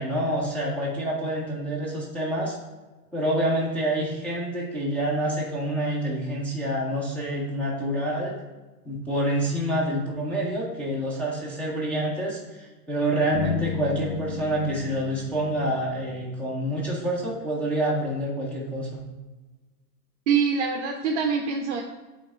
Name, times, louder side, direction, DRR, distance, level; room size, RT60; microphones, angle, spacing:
voice 1, 0.0-2.6 3.1-8.4 8.8-19.0, right 1 dB, 5° left, -7 dB, 0.5 m, -27 dB
sound 1, 13.3-17.3, left 7 dB, 35° left, 1.0 m, -35 dB
voice 2, 20.3-21.8, right 6 dB, 50° right, 2 dB, 0.7 m, -24 dB
8.7 x 3.3 x 3.6 m, 1.2 s
hypercardioid pair, 140°, 47 cm